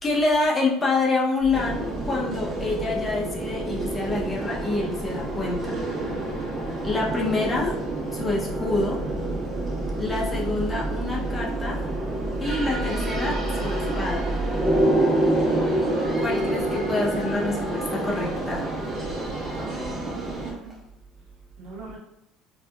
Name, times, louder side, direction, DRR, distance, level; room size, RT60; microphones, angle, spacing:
voice 1, 0.0-5.8 6.8-7.8 8.1-9.0 10.0-11.9 12.4-14.3 16.2-18.7, left 3 dB, 20° left, -3 dB, 0.8 m, -27 dB
sound 1, 1.4-14.8, right 1 dB, 50° left, 0.9 m, -35 dB
sound 2, 1.5-20.5, right 1 dB, 30° right, 1.4 m, -28 dB
Cheering / Applause / Crowd, 13.2-20.9, right 1 dB, 5° right, 1.0 m, -43 dB
voice 2, 19.6-20.8 21.6-22.0, right 3 dB, 60° right, -4 dB, 1.3 m, -39 dB
4.3 x 2.4 x 2.4 m, 0.82 s
supercardioid pair, 100°, 0 cm